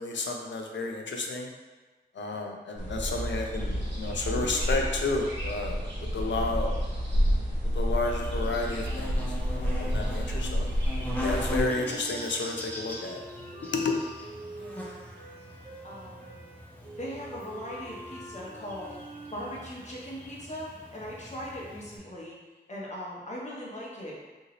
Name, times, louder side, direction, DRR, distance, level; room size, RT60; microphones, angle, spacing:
voice 1, 0.0-1.5 2.2-5.8 6.1-6.7 7.7-9.2 9.5-10.7 11.2-13.2 13.7-13.9, left 3 dB, 90° left, 2 dB, 0.4 m, -31 dB
sound 1, 2.8-11.7, equal, 75° right, 0.8 m, -29 dB
Buzz, 8.0-22.0, left 1 dB, 10° left, 0.6 m, -41 dB
sound 2, 11.1-19.8, right 1 dB, 50° right, 0.5 m, -46 dB
voice 2, 14.5-14.9 15.8-16.4 17.0-18.9 19.3-22.4 22.7-24.2, equal, 40° left, -5 dB, 0.8 m, -39 dB
2.8 x 2.7 x 2.9 m, 1.3 s
wide cardioid pair, 90°, 18 cm